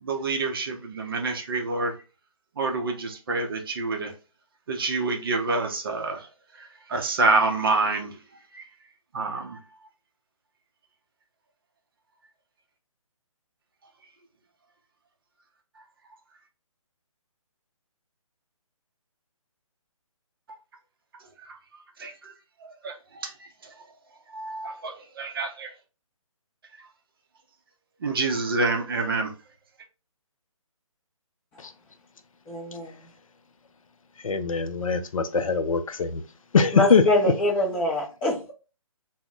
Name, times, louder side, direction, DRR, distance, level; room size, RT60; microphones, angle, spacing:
voice 1, 0.0-1.9 2.6-4.1 4.7-6.3 6.6-8.2 8.5-8.6 9.1-9.6 22.0-22.3 22.6-23.3 24.3-25.7 28.0-29.3, right 3 dB, 40° right, 0.5 m, -27 dB
voice 2, 32.5-33.0 36.7-38.5, left 1 dB, 10° left, 0.4 m, -24 dB
voice 3, 34.2-36.2 36.5-37.0, left 5 dB, 70° left, 0.4 m, -22 dB
2.1 x 2.0 x 3.7 m
figure-of-eight pair, 145°, 18 cm